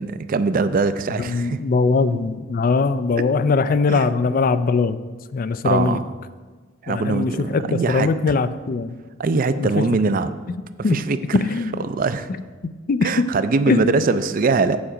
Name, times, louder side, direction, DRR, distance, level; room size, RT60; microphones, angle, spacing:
voice 1, 0.0-1.6 3.9-4.1 5.6-6.0 6.8-8.1 9.2-10.4 10.9-11.4 11.8-12.3 13.0-14.9, right 4 dB, 45° right, 12 dB, 0.4 m, -22 dB
voice 2, 1.2-5.0 5.3-6.0 6.9-9.0 9.6-10.0 10.5-11.0 11.4-11.8 12.6-13.1 13.7-14.0, left 4 dB, 45° left, 13 dB, 0.4 m, -21 dB
7.6 x 7.1 x 5.0 m, 1.4 s
head